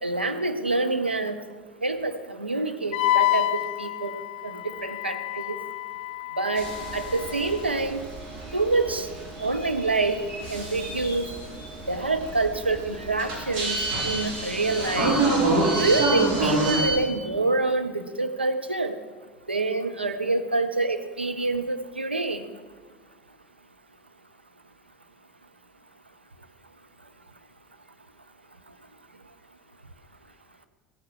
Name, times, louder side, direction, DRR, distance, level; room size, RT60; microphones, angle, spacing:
voice 1, 0.0-1.4 1.8-4.2 4.4-5.5 6.4-6.7 6.9-8.0 8.5-9.1 9.4-10.2 10.5-11.3 11.9-15.2 15.7-18.9 19.5-22.4, right 3 dB, 85° right, 7 dB, 0.9 m, -26 dB
Wind instrument woodwind instrument, 2.9-7.6, left 15 dB, 60° left, 0.4 m, -28 dB
sound 1, 6.6-17.0, right 2 dB, 55° right, 4.4 m, -28 dB
15.0 x 14.0 x 4.8 m, 1.5 s
figure-of-eight pair, 70°, 6 cm